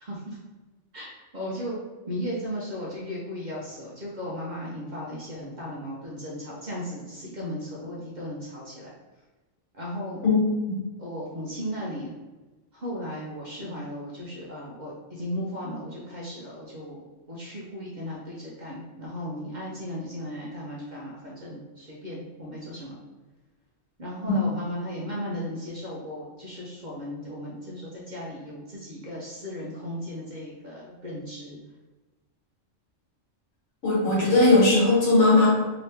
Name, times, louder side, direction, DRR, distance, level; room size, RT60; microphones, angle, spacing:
voice 1, 0.0-0.4 0.9-1.8 2.1-8.9 9.8-10.2 11.0-12.1 12.7-23.0 24.0-31.6, equal, 45° right, -5 dB, 0.7 m, -36 dB
voice 2, 33.8-35.5, left 2 dB, 70° left, -6 dB, 1.5 m, -18 dB
3.0 x 2.8 x 3.3 m, 1.2 s
omnidirectional pair, 1.3 m